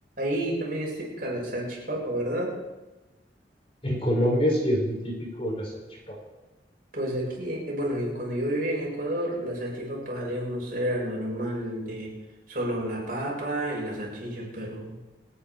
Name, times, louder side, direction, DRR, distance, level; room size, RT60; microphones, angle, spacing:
voice 1, 0.2-2.5 6.9-12.1 12.5-15.1, right 1 dB, 50° right, -4 dB, 7.2 m, -30 dB
voice 2, 3.8-5.7 6.1-6.2, equal, 30° left, -1 dB, 4.9 m, -25 dB
29.0 x 9.8 x 4.6 m, 1.1 s
head